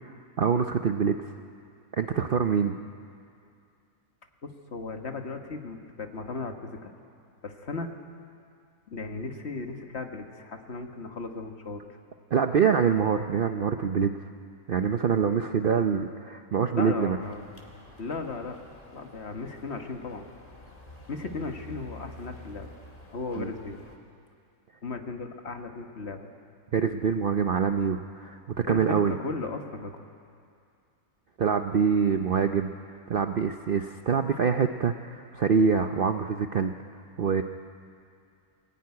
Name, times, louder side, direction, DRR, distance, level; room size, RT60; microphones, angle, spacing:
voice 1, 0.4-1.2 2.0-2.8 12.3-14.1 14.7-17.2 23.4-23.5 26.7-28.4 28.7-29.1 31.4-32.7 33.1-36.7 37.2-37.4, right 6 dB, 55° right, 7 dB, 0.6 m, -25 dB
voice 2, 4.4-6.9 7.4-7.9 8.9-11.8 16.7-17.4 18.0-18.6 18.9-20.2 21.1-22.7 23.1-23.8 24.8-26.2 28.6-30.0, left 3 dB, 45° left, 5 dB, 1.6 m, -36 dB
sound 1, 17.2-24.0, left 1 dB, 25° left, 2.2 m, -49 dB
23.5 x 15.5 x 9.5 m, 2.4 s
omnidirectional pair, 1.6 m